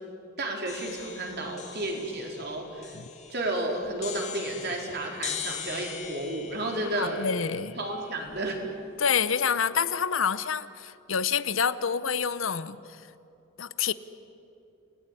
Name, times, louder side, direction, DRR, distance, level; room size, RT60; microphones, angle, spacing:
voice 1, 0.4-3.0 3.3-7.2 7.7-8.6, right 1 dB, 55° right, 1 dB, 4.3 m, -32 dB
sound 1, 0.7-8.6, left 7 dB, 35° left, 2.5 m, -41 dB
voice 2, 6.9-7.8 9.0-12.8 13.6-13.9, left 6 dB, 70° left, 15 dB, 0.8 m, -27 dB
28.5 x 18.5 x 9.9 m, 2.8 s
head